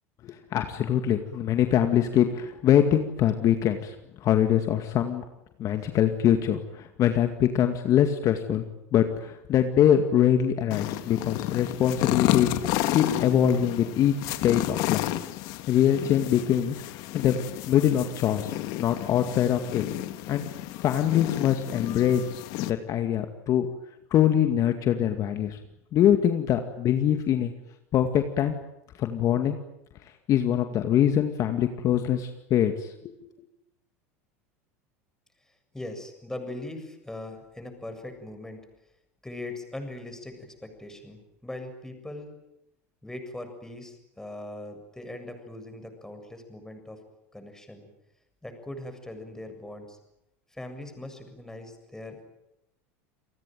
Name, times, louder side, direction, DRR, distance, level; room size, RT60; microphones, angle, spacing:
voice 1, 0.2-4.0 4.2-5.2 5.6-8.6 8.9-12.5 12.9-15.1 15.7-17.4 17.7-18.5 18.8-19.8 20.3-22.2 22.6-23.7 24.1-25.6 25.9-27.5 27.9-28.5 29.0-29.6 30.3-33.1, left 10 dB, 45° left, 6 dB, 2.2 m, -23 dB
sound 1, 10.7-22.7, left 16 dB, 60° left, 1.9 m, -31 dB
voice 2, 35.5-38.6 39.2-42.3 43.0-47.0 47.3-47.9 48.4-50.0 50.5-52.2, left 1 dB, 5° left, 6 dB, 7.5 m, -40 dB
29.5 x 20.0 x 9.3 m, 0.86 s
hypercardioid pair, 95°, 8 cm